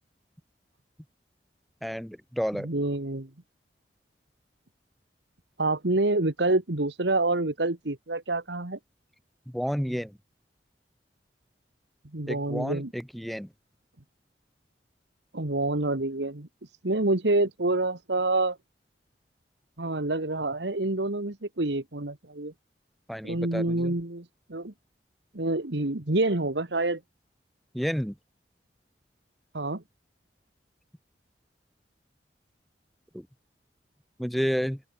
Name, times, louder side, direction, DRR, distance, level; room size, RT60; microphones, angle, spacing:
voice 1, 1.8-2.7 9.5-10.2 12.3-13.5 23.1-24.0 27.7-28.2 33.1-33.3 34.2-34.8, equal, ahead, 0.9 m, -31 dB
voice 2, 2.6-3.3 5.6-8.8 12.1-12.9 15.3-18.6 19.8-22.5 23.2-24.7 25.3-27.0 29.5-29.8, right 2 dB, 85° right, 1.9 m, -27 dB
open air
head